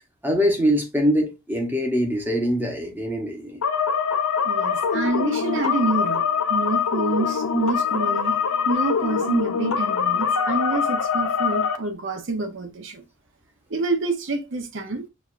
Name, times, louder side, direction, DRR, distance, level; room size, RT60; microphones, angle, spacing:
voice 1, 0.2-3.6, equal, 10° right, 0.8 m, -23 dB
sound 1, 3.6-11.8, left 6 dB, 90° left, 0.6 m, -23 dB
voice 2, 4.4-6.2 6.5-8.4 8.7-13.0 13.7-15.1, right 2 dB, 60° right, 0.7 m, -27 dB
6.0 x 2.4 x 2.4 m
head